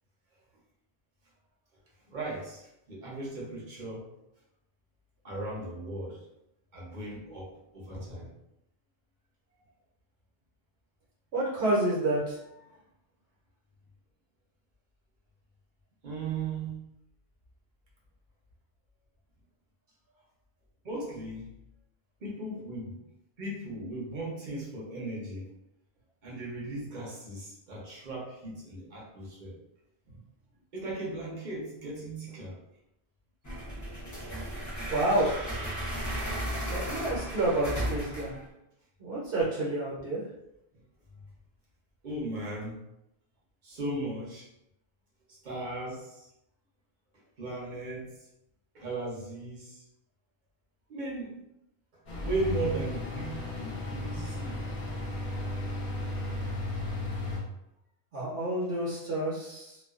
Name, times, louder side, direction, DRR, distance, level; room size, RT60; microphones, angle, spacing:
voice 1, 2.1-4.1 5.2-6.2 6.7-8.3 16.0-16.8 20.8-21.5 22.2-23.0 23.4-25.5 26.2-29.5 30.7-32.6 42.0-42.8 43.6-44.5 45.3-46.3 47.4-48.3 48.7-49.8 50.9-51.4 52.2-54.6, right 2 dB, 50° right, -4 dB, 0.8 m, -37 dB
voice 2, 11.3-12.4 34.9-35.3 36.7-38.3 39.0-40.2 58.1-59.8, right 1 dB, 75° right, -7 dB, 1.0 m, -29 dB
sound 1, 33.4-38.5, equal, 30° left, 0.3 m, -35 dB
sound 2, 52.1-57.4, left 2 dB, 50° left, 0.7 m, -34 dB
2.3 x 2.2 x 2.3 m, 0.84 s
omnidirectional pair, 1.1 m